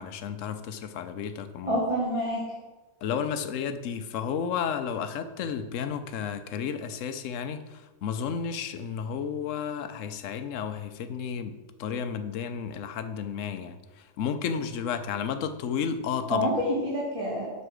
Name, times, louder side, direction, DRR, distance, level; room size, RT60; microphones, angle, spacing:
voice 1, 0.0-1.8 3.0-16.5, left 7 dB, 75° left, 9 dB, 0.7 m, -32 dB
voice 2, 1.6-2.4 16.3-17.5, equal, 20° right, -6 dB, 1.8 m, -27 dB
7.8 x 5.7 x 6.3 m, 1.2 s
omnidirectional pair, 2.0 m